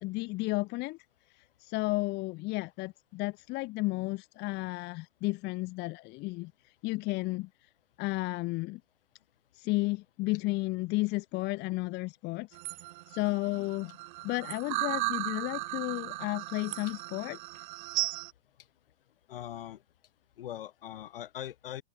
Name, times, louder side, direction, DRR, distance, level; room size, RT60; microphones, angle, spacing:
voice 1, 0.0-1.0 1.3-7.7 8.0-8.8 9.5-12.6 13.1-13.9 14.2-17.4, left 22 dB, 35° left, 0.9 m, -33 dB
sound 1, 12.5-18.3, right 22 dB, 50° right, 3.3 m, -36 dB
voice 2, 19.3-19.8 20.4-21.8, left 12 dB, 60° left, 3.9 m, -41 dB
open air
figure-of-eight pair, 90°, 31 cm